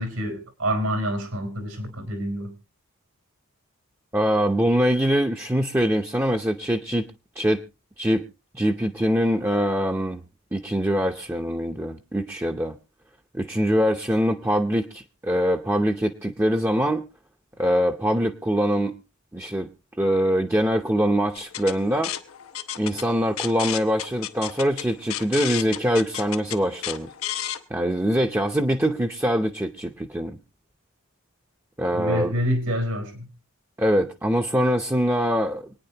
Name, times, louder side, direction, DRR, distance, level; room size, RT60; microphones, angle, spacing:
voice 1, 0.0-2.5 31.9-33.3, equal, 85° right, 7 dB, 4.1 m, -27 dB
voice 2, 4.1-7.0 7.4-7.6 8.0-8.2 8.5-10.2 10.5-12.8 13.3-17.1 17.6-18.9 19.3-19.7 20.0-22.1 22.8-27.1 27.7-30.4 31.8-32.3 33.8-35.7, equal, 10° right, 2 dB, 0.7 m, -23 dB
sound 1, 21.4-27.6, left 11 dB, 80° left, 0.9 m, -32 dB
25.5 x 9.6 x 2.8 m, 0.28 s
head